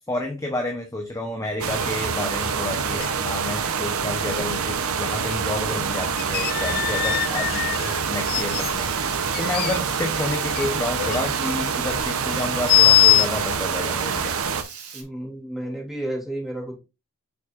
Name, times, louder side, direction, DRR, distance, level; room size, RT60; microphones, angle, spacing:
voice 1, 0.1-14.3, left 1 dB, 15° left, 3 dB, 1.0 m, -30 dB
sound 1, 1.6-14.6, right 6 dB, 70° right, 0.8 m, -26 dB
sound 2, 1.8-1.9 2.3-2.4 3.0-3.3 3.6-3.7 5.3-5.4 6.0-8.7 9.3-10.7 10.9-11.4 12.7-13.3, left 13 dB, 45° left, 0.3 m, -22 dB
Water tap faucet / Liquid, 7.6-15.0, right 7 dB, 85° right, 2.0 m, -40 dB
voice 2, 14.9-16.8, right 1 dB, ahead, -2 dB, 3.2 m, -31 dB
6.6 x 6.3 x 2.5 m, 0.27 s
head